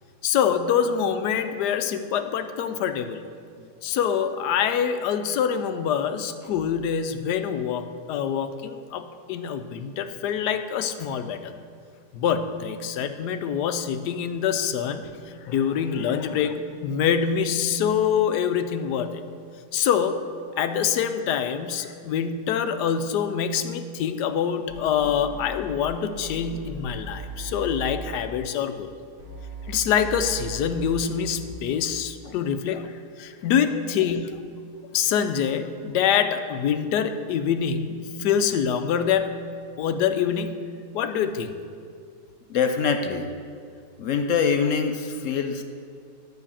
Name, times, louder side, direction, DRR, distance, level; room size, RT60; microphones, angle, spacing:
voice 1, 0.2-3.2 3.8-11.5 12.1-15.2 15.4-19.2 19.7-20.2 20.6-28.9 29.7-34.4 34.9-39.4 39.8-40.7 40.9-41.5, left 8 dB, 80° left, 9 dB, 1.2 m, -25 dB
sound 1, 24.7-25.5 25.8-28.0 29.2-31.5, right 3 dB, 85° right, 2.7 m, -38 dB
voice 2, 42.5-43.3 44.0-45.6, left 6 dB, 65° left, 6 dB, 0.8 m, -24 dB
9.5 x 5.8 x 7.3 m, 2.2 s
omnidirectional pair, 1.8 m